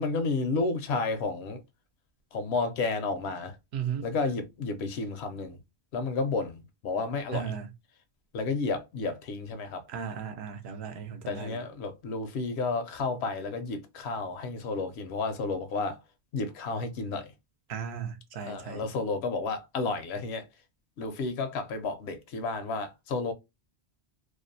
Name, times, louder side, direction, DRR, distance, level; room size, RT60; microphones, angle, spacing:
voice 1, 0.0-1.6 2.3-3.6 4.0-5.6 5.9-7.5 8.3-9.8 11.3-16.0 16.3-17.3 18.5-20.4 21.0-23.3, left 3 dB, 80° left, 0.9 m, -31 dB
voice 2, 3.7-4.1 7.3-7.7 9.9-11.6 17.7-18.9, right 7 dB, 75° right, 0.9 m, -36 dB
2.5 x 2.0 x 2.5 m
omnidirectional pair, 1.1 m